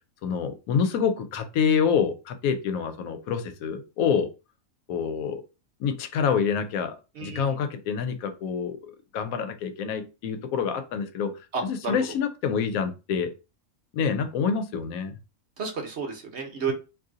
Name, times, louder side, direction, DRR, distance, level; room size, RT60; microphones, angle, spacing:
voice 1, 0.2-4.3 4.9-5.4 5.8-7.0 7.2-11.3 11.6-13.3 13.9-15.1, left 6 dB, 80° left, 9 dB, 1.0 m, -27 dB
voice 2, 7.2-7.5 11.5-12.0 15.6-16.7, right 5 dB, 60° right, 3 dB, 0.9 m, -31 dB
2.7 x 2.6 x 3.6 m, 0.30 s
omnidirectional pair, 1.5 m